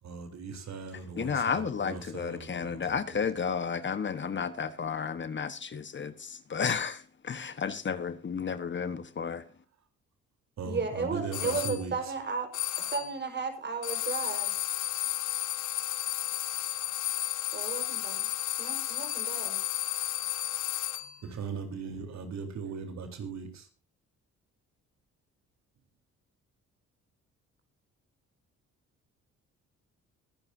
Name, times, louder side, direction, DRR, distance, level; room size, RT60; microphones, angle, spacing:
voice 1, 0.0-2.8 3.1-3.2 10.6-11.9 21.2-23.7, right 5 dB, 65° right, 3.8 m, -39 dB
voice 2, 1.2-9.4, left 6 dB, 40° left, 1.2 m, -32 dB
voice 3, 10.6-12.5 12.8-14.5 17.5-18.2 18.6-19.6, right 4 dB, 35° right, 4.9 m, -34 dB
sound 1, 11.3-11.8 12.5-13.2 13.8-21.2, left 12 dB, 80° left, 1.3 m, -33 dB
23.5 x 10.5 x 2.7 m
cardioid pair, 90°, 30 cm